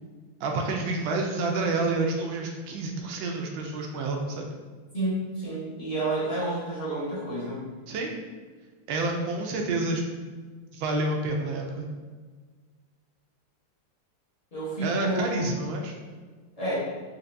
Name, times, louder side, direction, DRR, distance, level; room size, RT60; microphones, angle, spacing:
voice 1, 0.4-4.5 7.9-8.2 8.9-10.2 10.7-11.9 14.8-15.9, right 2 dB, 85° right, 2 dB, 1.4 m, -29 dB
voice 2, 4.9-7.7 14.5-15.6 16.6-16.8, right 2 dB, 30° left, -9 dB, 0.7 m, -30 dB
4.4 x 2.6 x 2.5 m, 1.5 s
omnidirectional pair, 2.1 m